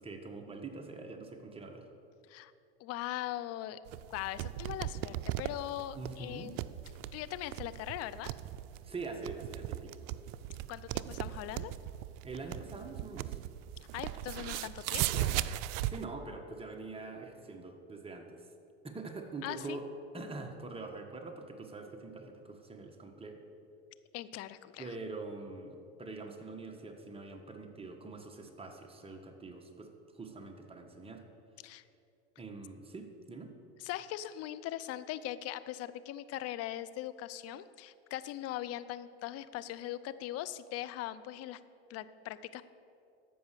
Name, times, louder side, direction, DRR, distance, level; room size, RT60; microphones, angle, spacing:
voice 1, 0.0-1.9 5.9-6.5 8.8-9.9 12.2-13.4 15.8-18.4 18.8-19.9 20.1-23.4 24.8-31.2 32.4-33.5, right 3 dB, 15° right, 3 dB, 1.5 m, -44 dB
voice 2, 2.8-3.8 4.1-6.6 7.1-8.3 10.7-11.7 13.9-15.3 19.4-19.8 24.1-24.9 31.6-31.8 33.8-41.6 41.9-42.6, left 13 dB, 45° left, 14 dB, 0.6 m, -40 dB
sound 1, 3.9-16.0, right 14 dB, 65° right, 0.5 m, -38 dB
14.0 x 5.5 x 6.8 m, 2.6 s
hypercardioid pair, 95°, 33 cm